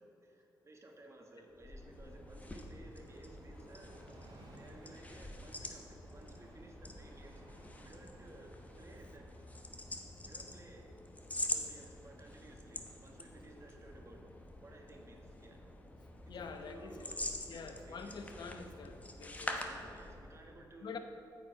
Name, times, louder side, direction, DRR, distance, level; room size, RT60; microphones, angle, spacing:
voice 1, 0.0-4.0 4.6-7.4 7.8-9.3 10.2-10.9 11.5-14.3 14.6-15.6 16.2-18.3 19.5-21.0, right 1 dB, 35° right, 1 dB, 1.4 m, -56 dB
Train, 0.9-14.2 14.5-14.6, right 1 dB, 85° right, 2.1 m, -62 dB
sound 1, 1.5-20.4, left 1 dB, 20° left, 1.0 m, -46 dB
voice 2, 16.3-16.9 17.5-19.9 20.8-21.0, left 5 dB, 65° left, 6 dB, 0.8 m, -46 dB
8.9 x 7.5 x 4.8 m, 2.8 s
cardioid pair, 75°, 8 cm